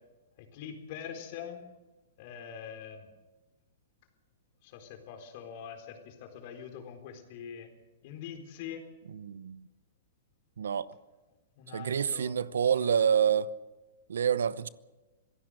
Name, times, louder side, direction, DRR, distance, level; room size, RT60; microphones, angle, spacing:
voice 1, 0.4-1.7 2.2-3.1 4.6-7.7 8.0-8.9 11.6-12.4, left 8 dB, 50° left, 4.1 m, -44 dB
voice 2, 9.1-9.6 10.6-10.9 11.7-13.5 14.1-14.7, right 8 dB, 85° right, 0.8 m, -27 dB
26.0 x 16.5 x 6.5 m
hypercardioid pair, 140°, 0 cm